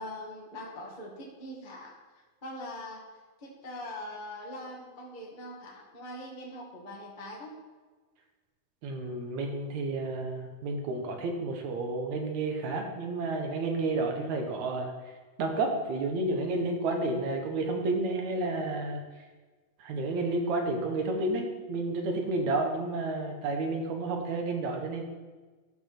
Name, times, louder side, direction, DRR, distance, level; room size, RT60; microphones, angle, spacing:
voice 1, 0.0-1.9 2.4-3.0 3.4-7.5, left 1 dB, 20° left, -4 dB, 1.3 m, -42 dB
voice 2, 8.8-14.9 15.4-19.0 19.8-25.0, right 2 dB, 60° right, 2 dB, 2.5 m, -31 dB
14.0 x 5.4 x 6.2 m, 1.3 s
omnidirectional pair, 4.2 m